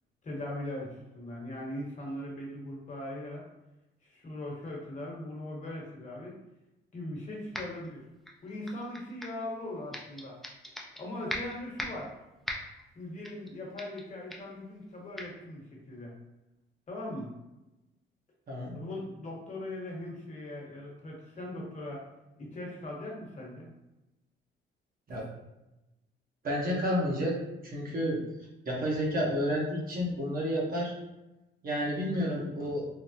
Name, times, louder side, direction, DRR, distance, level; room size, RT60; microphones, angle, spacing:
voice 1, 0.2-3.4 4.1-6.3 6.9-8.0 8.4-10.4 11.0-12.1 12.9-16.1 16.9-17.3 18.7-22.0 22.4-23.7, left 1 dB, 40° left, -2 dB, 1.1 m, -40 dB
sound 1, 7.5-7.9 8.2-9.4 9.9-11.0 11.3-12.1 12.5-12.8 13.2-13.5 13.8-14.0 14.3-14.5 15.2-15.3, equal, ahead, 0.4 m, -39 dB
voice 2, 18.5-18.8 25.1-25.2 26.4-27.4 27.6-28.2 28.6-30.9 31.6-32.8, equal, 45° right, -3 dB, 0.9 m, -30 dB
3.5 x 2.0 x 2.7 m, 0.98 s
cardioid pair, 90°, 20 cm